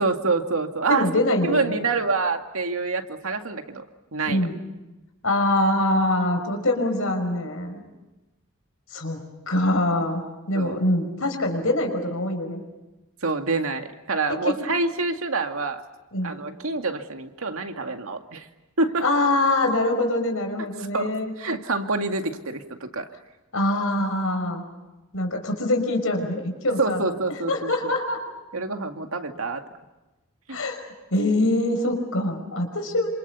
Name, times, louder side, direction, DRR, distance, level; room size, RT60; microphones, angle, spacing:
voice 1, 0.0-1.1 1.4-3.8 4.1-4.4 10.5-10.8 13.2-15.8 16.2-18.5 18.8-19.0 20.9-21.1 21.4-23.0 26.8-27.9 28.5-29.6 30.5-30.6, right 3 dB, 80° right, 5 dB, 2.2 m, -26 dB
voice 2, 0.9-1.8 4.2-4.5 5.2-7.8 8.9-9.2 9.5-10.2 10.5-12.6 14.4-14.5 16.1-16.3 19.0-21.3 23.5-24.6 25.1-27.0 27.5-28.2 30.5-30.8 31.1-33.1, left 1 dB, 75° left, 5 dB, 5.5 m, -24 dB
28.0 x 27.0 x 7.0 m, 1.1 s
head